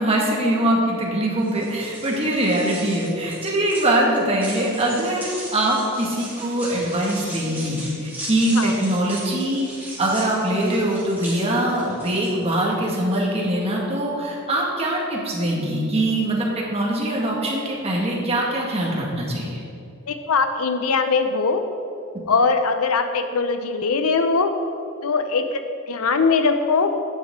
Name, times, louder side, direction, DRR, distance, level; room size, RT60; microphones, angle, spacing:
voice 1, 0.0-9.7 10.0-19.6, right 1 dB, 25° right, -2 dB, 1.8 m, -22 dB
sound 1, 1.4-12.6, right 1 dB, 10° right, 2.6 m, -37 dB
voice 2, 20.1-21.6 22.3-24.5 25.0-25.6 25.9-26.9, left 4 dB, 80° left, 7 dB, 0.7 m, -21 dB
12.0 x 9.0 x 3.7 m, 2.7 s
head